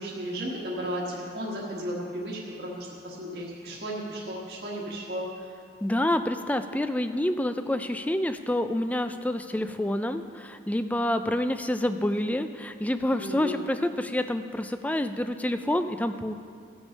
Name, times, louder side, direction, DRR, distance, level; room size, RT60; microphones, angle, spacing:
voice 1, 0.0-5.2 13.2-13.7, equal, 60° right, -6 dB, 1.4 m, -34 dB
voice 2, 5.8-16.3, left 1 dB, 10° left, 9 dB, 0.3 m, -28 dB
15.5 x 6.2 x 5.3 m, 2.3 s
head